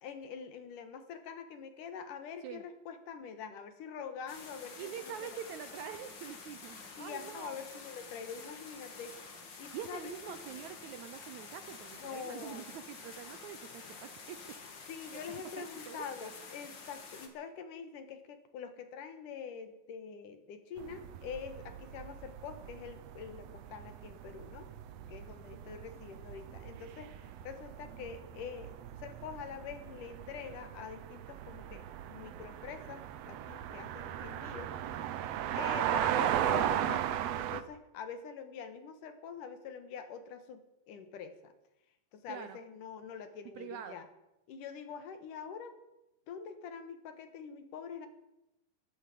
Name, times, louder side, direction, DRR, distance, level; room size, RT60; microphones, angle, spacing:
voice 1, 0.0-5.4 7.0-9.1 9.6-10.4 12.0-12.7 14.9-24.7 25.1-28.8 29.0-31.8 32.1-34.7 35.5-40.6 40.9-41.5 42.1-44.1 44.5-45.8 46.3-48.1, left 6 dB, 70° left, 9 dB, 2.9 m, -45 dB
sound 1, 4.3-17.3, left 4 dB, 40° left, 2.1 m, -49 dB
voice 2, 4.8-7.6 9.7-14.6 15.0-16.3 42.3-42.6 43.6-44.0, right 9 dB, 75° right, 10 dB, 1.8 m, -45 dB
sound 2, 20.8-37.6, right 11 dB, 90° right, 1.4 m, -37 dB
13.5 x 12.5 x 8.4 m, 0.90 s
omnidirectional pair, 4.0 m